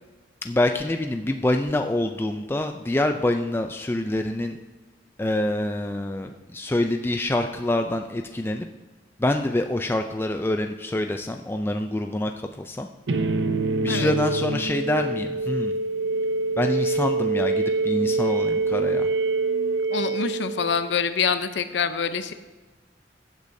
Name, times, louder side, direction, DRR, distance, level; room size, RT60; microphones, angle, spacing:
voice 1, 0.4-4.6 5.2-8.7 9.2-12.3 12.6-12.9 13.8-15.7 16.6-19.1, left 1 dB, 15° left, 5 dB, 0.4 m, -26 dB
sound 1, 13.1-21.0, right 3 dB, 85° right, 0.7 m, -25 dB
voice 2, 19.9-22.3, left 6 dB, 80° left, 10 dB, 0.7 m, -25 dB
15.5 x 8.3 x 2.7 m, 1.3 s
head